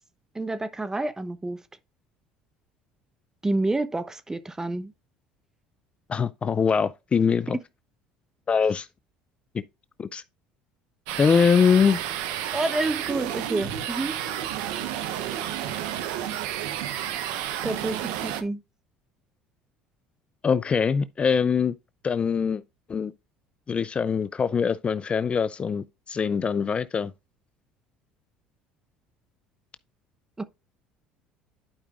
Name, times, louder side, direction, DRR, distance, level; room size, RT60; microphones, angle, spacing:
voice 1, 0.3-1.6 3.4-4.9 12.5-14.1 17.6-18.6 30.4-30.5, right 2 dB, 15° right, 0.9 m, -28 dB
voice 2, 6.1-7.6 8.5-8.9 10.0-10.2 11.2-12.0 20.4-21.7 22.0-22.6 22.9-23.1 23.7-27.1, left 6 dB, 30° left, 0.4 m, -23 dB
sound 1, 11.1-18.4, right 11 dB, 75° right, 0.9 m, -31 dB
11.5 x 5.0 x 2.4 m
hypercardioid pair, 75°, 4 cm